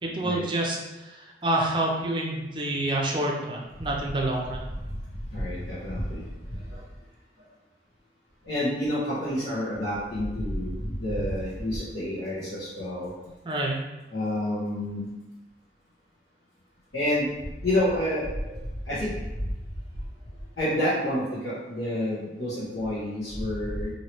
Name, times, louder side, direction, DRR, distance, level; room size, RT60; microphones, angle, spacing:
voice 1, 0.0-4.7 13.4-13.8, right 1 dB, 25° right, -2 dB, 0.5 m, -28 dB
voice 2, 5.3-6.2 6.7-6.8 8.5-13.1 14.1-15.0 16.9-17.3 17.6-18.3 18.9-19.1 20.6-23.9, left 1 dB, 80° left, -12 dB, 1.1 m, -28 dB
3.0 x 2.7 x 3.0 m, 1.1 s
head